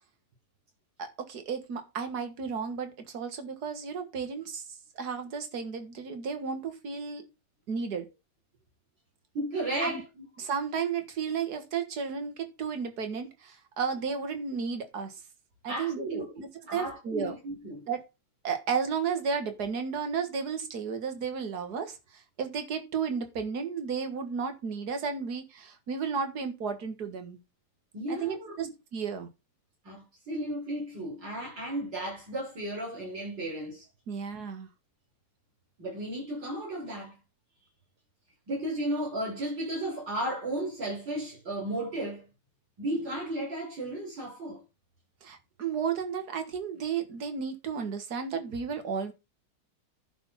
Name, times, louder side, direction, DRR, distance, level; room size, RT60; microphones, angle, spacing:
voice 1, 1.0-4.6 5.0-7.2 7.7-8.1 9.8-10.0 10.4-15.1 15.6-17.4 17.9-18.0 18.4-27.4 28.1-29.3 34.1-34.7 45.2-49.1, right 6 dB, 60° right, 2.1 m, -33 dB
voice 2, 9.3-10.2 15.7-16.4 16.7-17.8 27.9-28.7 29.8-33.9 35.8-37.1 38.5-42.3 42.8-44.6, right 1 dB, 80° right, 6.2 m, -34 dB
11.0 x 4.4 x 5.7 m
omnidirectional pair, 2.0 m